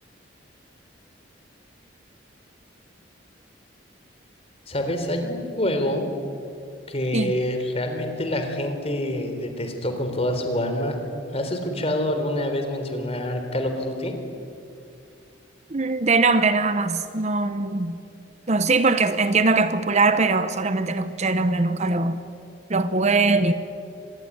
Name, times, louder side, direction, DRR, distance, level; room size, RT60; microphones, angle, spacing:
voice 1, 4.7-6.1 6.9-11.0 11.3-14.2, left 1 dB, 30° left, 5 dB, 3.8 m, -26 dB
voice 2, 15.7-18.0 18.5-22.2 22.7-23.5, right 3 dB, 35° right, 11 dB, 0.9 m, -21 dB
25.5 x 20.5 x 9.9 m, 2.5 s
head